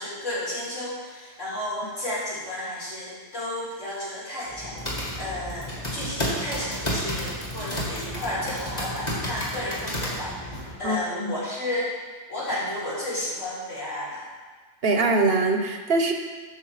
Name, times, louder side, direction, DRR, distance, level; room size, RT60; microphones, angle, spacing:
voice 1, 0.0-11.9 12.3-14.3, left 1 dB, 75° left, -8 dB, 4.3 m, -32 dB
sound 1, 4.5-10.7, equal, 35° left, 2.2 m, -31 dB
voice 2, 10.8-11.3 14.8-16.1, right 3 dB, 55° right, 4 dB, 1.0 m, -23 dB
11.5 x 7.2 x 4.8 m, 1.4 s
omnidirectional pair, 1.3 m